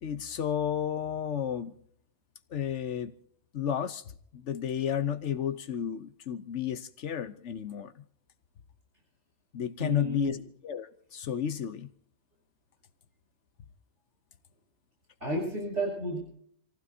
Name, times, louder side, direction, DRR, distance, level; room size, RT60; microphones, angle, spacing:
voice 1, 0.0-1.7 2.5-3.1 3.5-4.0 4.3-8.0 9.5-10.4 10.6-11.9, left 9 dB, 80° left, 1.2 m, -32 dB
voice 2, 9.8-10.4 15.2-16.2, equal, 80° right, 7.5 m, -32 dB
27.5 x 16.0 x 2.7 m
omnidirectional pair, 1.2 m